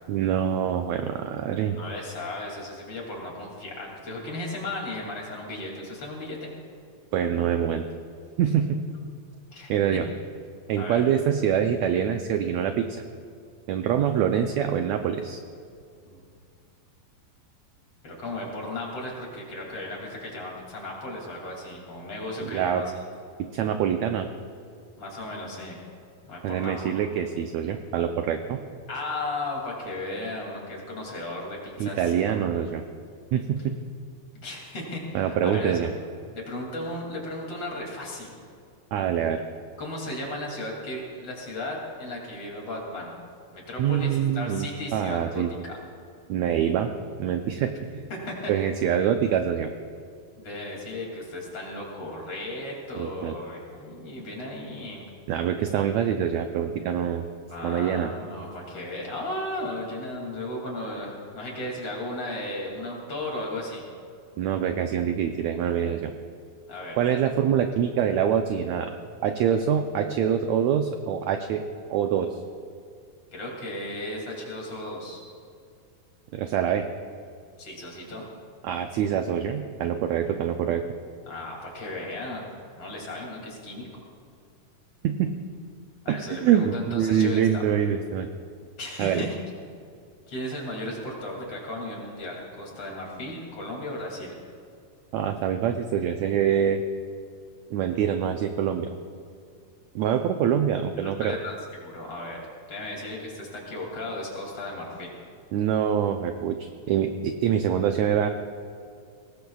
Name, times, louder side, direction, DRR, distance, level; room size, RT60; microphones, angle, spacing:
voice 1, 0.1-1.8 7.1-7.8 8.4-8.8 9.7-10.1 10.7-12.9 13.7-15.4 22.4-22.8 23.5-24.3 26.4-28.6 31.8-32.8 33.3-33.7 35.1-35.9 38.9-39.4 43.8-45.5 46.3-46.9 47.2-48.0 48.5-49.7 52.9-53.4 55.3-57.2 57.6-58.1 64.4-66.1 67.0-68.9 69.2-71.6 71.9-72.4 76.3-76.9 78.6-80.8 85.0-85.3 86.1-88.3 89.0-89.3 95.1-96.8 97.7-98.9 99.9-101.4 105.5-108.3, right 9 dB, 85° right, 6 dB, 1.5 m, -25 dB
voice 2, 1.8-6.5 9.5-10.0 10.8-11.0 16.0-16.2 18.0-22.9 25.0-25.8 26.3-26.9 28.9-32.4 34.3-35.8 36.3-38.4 39.8-43.1 43.5-45.8 48.1-48.5 50.4-55.0 57.5-63.8 66.7-67.0 73.3-75.2 77.6-78.2 81.3-82.5 82.8-84.0 86.0-87.6 88.8-89.4 90.3-94.3 101.0-102.4 102.7-105.1, left 1 dB, 45° left, -2 dB, 3.4 m, -35 dB
23.0 x 18.5 x 2.4 m, 2.3 s
omnidirectional pair, 3.9 m